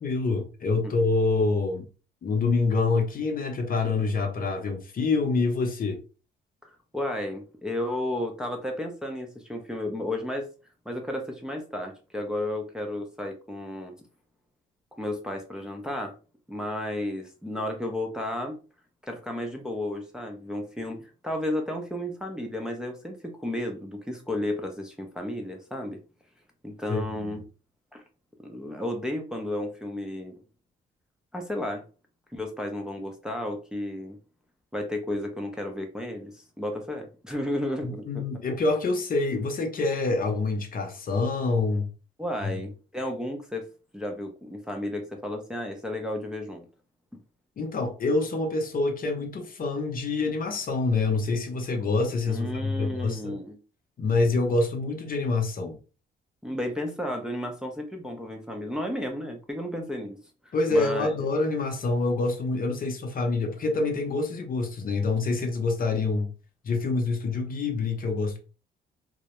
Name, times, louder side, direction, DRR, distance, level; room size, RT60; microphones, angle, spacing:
voice 1, 0.0-1.9 2.2-6.0 26.9-27.3 37.8-41.9 42.4-42.6 47.6-53.4 54.0-55.8 60.5-66.3 66.6-68.4, left 3 dB, 45° left, 0.6 m, -26 dB
voice 2, 6.9-10.5 10.9-13.9 15.0-16.1 16.5-18.6 19.0-26.0 26.6-27.4 27.9-28.0 28.4-30.4 31.3-31.8 32.3-34.2 34.7-38.2 42.2-43.6 43.9-46.7 52.3-53.6 56.4-60.2 60.4-61.1, left 1 dB, 5° right, 0.5 m, -33 dB
2.3 x 2.0 x 2.8 m
cardioid pair, 90°, 20 cm